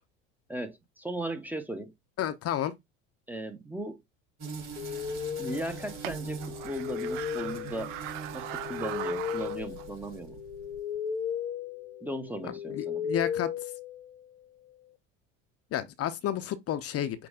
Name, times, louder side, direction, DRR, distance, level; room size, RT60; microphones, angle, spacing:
voice 1, 0.5-1.9 3.3-4.0 5.4-7.9 8.3-10.4 12.0-13.1, right 1 dB, 5° right, 0.8 m, -37 dB
voice 2, 2.2-2.7 12.7-13.5 15.7-17.3, left 11 dB, 40° left, 0.7 m, -31 dB
sound 1, 4.4-10.4, right 5 dB, 45° right, 3.6 m, -43 dB
sound 2, 4.5-10.8, right 13 dB, 70° right, 0.6 m, -42 dB
sound 3, 4.8-14.4, left 7 dB, 85° left, 0.8 m, -36 dB
6.0 x 2.2 x 3.6 m
hypercardioid pair, 80°, 38 cm